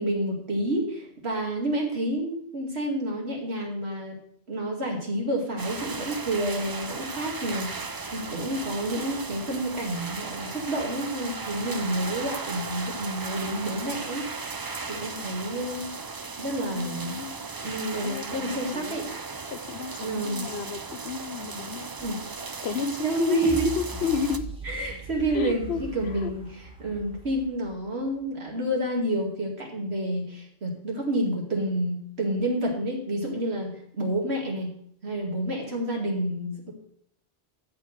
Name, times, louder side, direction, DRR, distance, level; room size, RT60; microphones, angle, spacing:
voice 1, 0.0-4.2 4.5-14.3 14.9-15.9 16.4-17.2 17.6-19.1 20.0-20.5 22.0-22.2 23.0-23.7 24.6-34.7 35.0-36.7, right 1 dB, 85° right, 0 dB, 2.6 m, -29 dB
sound 1, 5.6-24.4, right 4 dB, 30° right, 0.4 m, -36 dB
voice 2, 16.7-17.4 18.0-19.0 19.5-21.9 22.6-24.4 25.3-25.9 26.2-26.3, left 6 dB, 80° left, 11 dB, 1.1 m, -32 dB
sound 2, 23.4-28.3 28.8-28.9, right 3 dB, 5° right, 2.0 m, -40 dB
13.0 x 4.6 x 6.6 m, 0.64 s
omnidirectional pair, 1.1 m